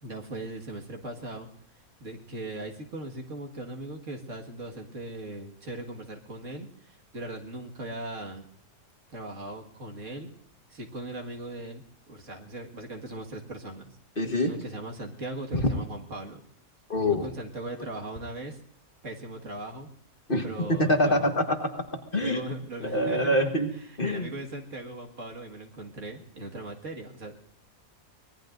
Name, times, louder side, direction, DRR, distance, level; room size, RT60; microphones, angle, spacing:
voice 1, 0.0-1.5 2.0-8.4 9.1-10.3 10.7-14.0 14.4-16.4 17.2-18.6 19.0-19.9 20.4-21.2 22.2-23.4 24.0-27.3, right 2 dB, 55° right, 1 dB, 2.2 m, -39 dB
voice 2, 14.2-14.5 15.5-15.7 16.9-17.3 20.3-21.8 22.1-22.4 22.8-23.7 24.0-24.3, left 1 dB, 40° left, 4 dB, 1.6 m, -25 dB
24.5 x 20.5 x 2.6 m, 0.70 s
omnidirectional pair, 1.5 m